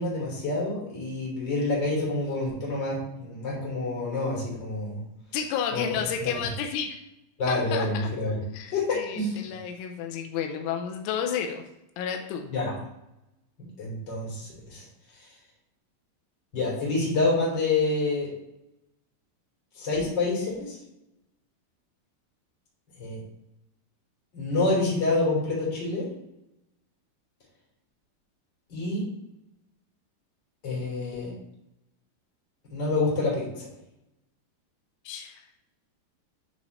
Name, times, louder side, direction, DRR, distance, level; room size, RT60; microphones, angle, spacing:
voice 1, 0.0-5.0 5.7-5.8 6.2-6.3 7.4-8.4 8.7-8.9 9.1-9.3 12.5-12.7 13.8-14.8 16.5-18.3 19.8-20.8 23.0-23.2 24.3-26.1 28.7-29.0 30.6-31.3 32.7-33.7, left 2 dB, 25° left, -5 dB, 3.4 m, -27 dB
voice 2, 5.3-7.0 7.5-8.1 8.5-11.6 12.0-12.5 35.1-35.4, left 7 dB, 90° left, 4 dB, 3.2 m, -31 dB
9.9 x 5.0 x 4.1 m, 0.87 s
omnidirectional pair, 5.5 m